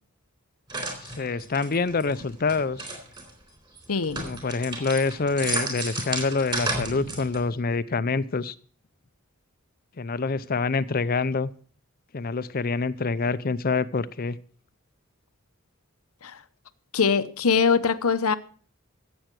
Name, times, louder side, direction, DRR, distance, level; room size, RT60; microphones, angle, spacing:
sound 1, 0.7-3.3 3.8-7.5, right 2 dB, 20° right, 3.8 m, -33 dB
voice 1, 1.0-2.9 4.2-8.5 10.0-11.5 12.1-14.4, left 4 dB, 40° left, 0.6 m, -26 dB
voice 2, 3.9-4.3 16.2-16.4 16.9-18.4, left 5 dB, 85° left, 0.9 m, -22 dB
15.0 x 7.9 x 6.0 m
head